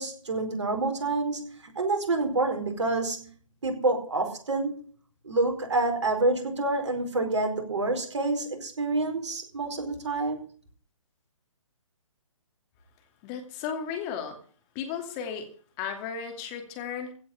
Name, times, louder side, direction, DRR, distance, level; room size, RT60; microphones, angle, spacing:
voice 1, 0.0-3.3 3.6-4.8 5.2-10.4, right 2 dB, 60° right, 4 dB, 4.7 m, -28 dB
voice 2, 13.2-14.4 14.7-15.5 15.8-17.1, left 7 dB, 25° left, 4 dB, 2.6 m, -34 dB
16.0 x 6.2 x 9.7 m, 0.44 s
figure-of-eight pair, 135°, 17 cm